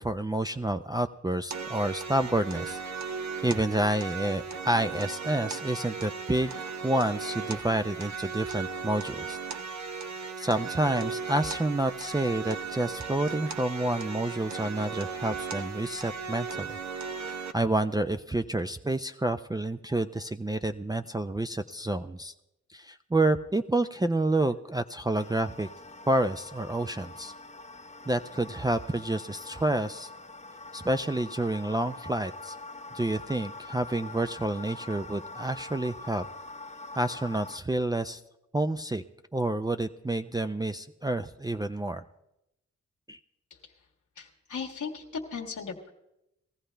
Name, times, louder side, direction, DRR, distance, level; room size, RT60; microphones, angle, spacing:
voice 1, 0.0-3.1 3.4-6.5 6.8-9.4 10.4-16.8 17.2-22.3 22.7-25.7 26.1-27.3 28.1-30.1 30.7-32.6 32.9-36.3 36.9-38.2 38.5-39.0 39.3-42.0 43.1-43.2, right 1 dB, 15° right, 6 dB, 0.5 m, -29 dB
sound 1, 1.5-17.5, right 5 dB, 70° right, 0.9 m, -37 dB
sound 2, 25.2-37.6, left 2 dB, 25° left, 0.7 m, -44 dB
voice 2, 44.2-45.9, left 5 dB, 85° left, -2 dB, 1.6 m, -37 dB
20.0 x 14.0 x 3.4 m, 0.87 s
cardioid pair, 50°, 30 cm